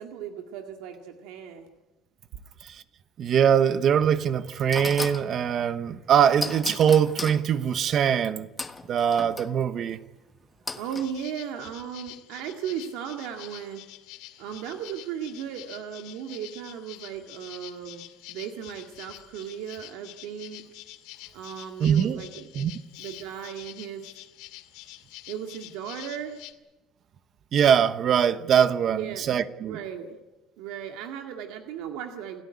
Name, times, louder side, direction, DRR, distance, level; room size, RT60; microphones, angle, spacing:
voice 1, 0.0-1.7 10.7-13.9 14.4-20.6 21.3-22.6 23.0-24.1 25.3-26.5 28.9-29.3 29.6-30.2 30.6-32.4, right 8 dB, 85° right, 2.1 m, -36 dB
voice 2, 3.2-8.5 8.9-10.0 21.8-22.2 22.5-22.7 27.5-29.8, right 8 dB, 40° right, 1.0 m, -22 dB
sound 1, 4.0-4.1 4.7-5.3 6.4-7.4 8.6-9.5 10.7-11.1, left 3 dB, 15° left, 1.3 m, -34 dB
sound 2, 10.8-26.5, left 16 dB, 90° left, 2.2 m, -47 dB
29.0 x 13.5 x 9.8 m
cardioid pair, 150°, 0 cm